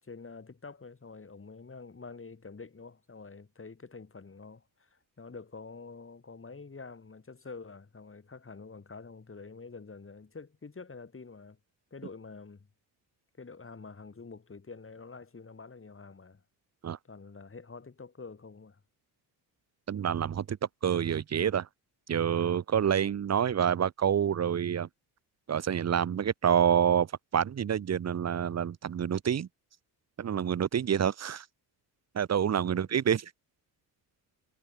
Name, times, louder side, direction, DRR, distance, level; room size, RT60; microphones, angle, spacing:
voice 1, 0.0-11.6 11.9-12.7 13.4-16.4 17.0-18.8 32.6-32.8, left 4 dB, 30° left, 4.5 m, -47 dB
voice 2, 19.9-20.6 20.8-21.7 22.1-24.9 25.5-29.5 30.2-31.5 32.1-33.3, right 8 dB, 35° right, 0.8 m, -27 dB
cardioid pair, 70°, 44 cm